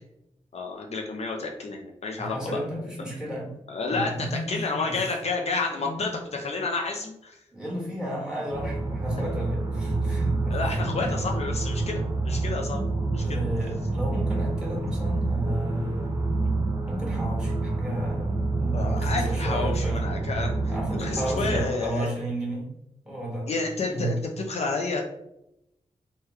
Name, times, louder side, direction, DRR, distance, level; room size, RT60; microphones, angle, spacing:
voice 1, 0.5-2.6 3.7-7.4 10.5-12.8 13.1-13.4 18.7-22.1 23.5-25.0, left 3 dB, 60° left, 2 dB, 0.4 m, -30 dB
voice 2, 2.2-3.5 3.9-5.0 5.7-6.1 7.5-11.2 13.2-16.3 16.9-18.3 18.6-20.0 20.7-22.7 23.0-23.5 23.9-24.2, right 1 dB, 5° right, -4 dB, 1.5 m, -33 dB
sound 1, 8.5-21.6, right 2 dB, 20° right, 0.8 m, -28 dB
3.1 x 2.2 x 3.4 m, 0.84 s
cardioid pair, 70°, 12 cm